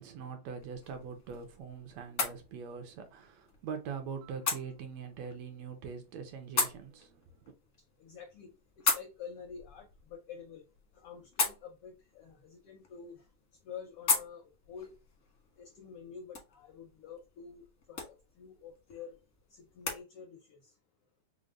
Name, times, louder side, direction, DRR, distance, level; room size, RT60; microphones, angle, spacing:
voice 1, 0.0-7.5, right 6 dB, 75° right, 1.8 m, -43 dB
sound 1, 0.5-20.0, left 4 dB, 65° left, 0.7 m, -39 dB
voice 2, 8.0-10.6 10.9-13.2 13.6-14.9 15.6-19.2 19.5-20.7, left 6 dB, 80° left, 1.2 m, -48 dB
5.1 x 2.2 x 3.6 m
omnidirectional pair, 3.4 m